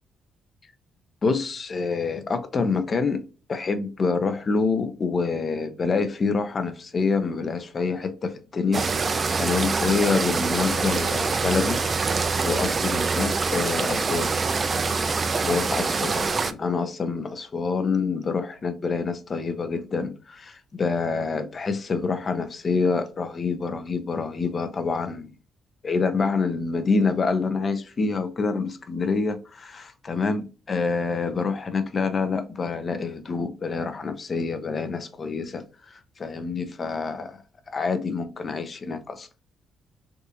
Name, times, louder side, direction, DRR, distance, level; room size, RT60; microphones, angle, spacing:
voice 1, 1.2-8.8 9.4-11.8 12.4-14.3 15.4-25.3 25.8-35.6 35.9-37.4 37.7-39.3, left 4 dB, 40° left, 0.6 m, -26 dB
sound 1, 8.7-16.5, right 4 dB, 35° right, 0.4 m, -25 dB
3.5 x 2.5 x 2.8 m
cardioid pair, 90°, 0 cm